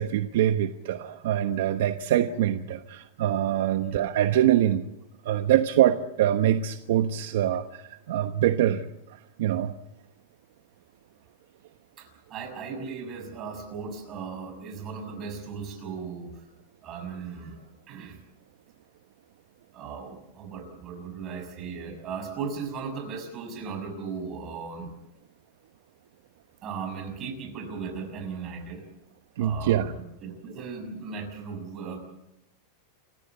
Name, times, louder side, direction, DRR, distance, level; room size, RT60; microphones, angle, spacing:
voice 1, 0.0-4.8 5.2-8.8 9.1-9.7 29.4-29.9, right 11 dB, 70° right, 9 dB, 1.1 m, -24 dB
voice 2, 12.0-16.5 16.8-18.2 19.7-24.9 26.6-28.9 29.4-32.0, right 5 dB, 30° right, 4 dB, 6.4 m, -37 dB
28.0 x 15.5 x 8.3 m, 0.82 s
supercardioid pair, 155°, 0 cm